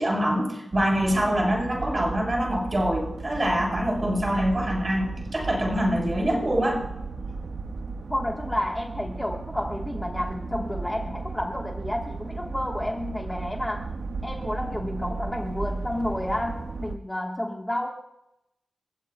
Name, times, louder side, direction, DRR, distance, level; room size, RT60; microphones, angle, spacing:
voice 1, 0.0-6.8, equal, 25° right, -1 dB, 6.8 m, -25 dB
sound 1, 0.7-17.0, right 3 dB, 70° right, 1.2 m, -35 dB
voice 2, 8.1-13.9 14.2-17.9, left 1 dB, 10° left, 0 dB, 1.2 m, -30 dB
30.0 x 15.5 x 2.2 m, 0.85 s
wide cardioid pair, 170°, 0 cm